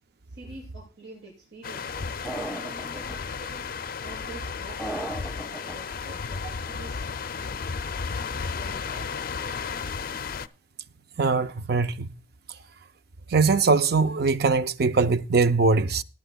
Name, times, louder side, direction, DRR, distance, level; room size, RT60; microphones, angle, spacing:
voice 1, 0.3-3.6 4.0-7.6 8.3-9.5, right 2 dB, 90° right, 6.8 m, -47 dB
sound 1, 1.6-10.5, left 5 dB, 55° left, 0.5 m, -33 dB
sound 2, 2.2-3.2 4.8-5.8, right 1 dB, 5° right, 0.9 m, -35 dB
voice 2, 11.2-12.1 13.3-16.0, right 4 dB, 60° right, 0.5 m, -21 dB
19.0 x 10.0 x 2.3 m
head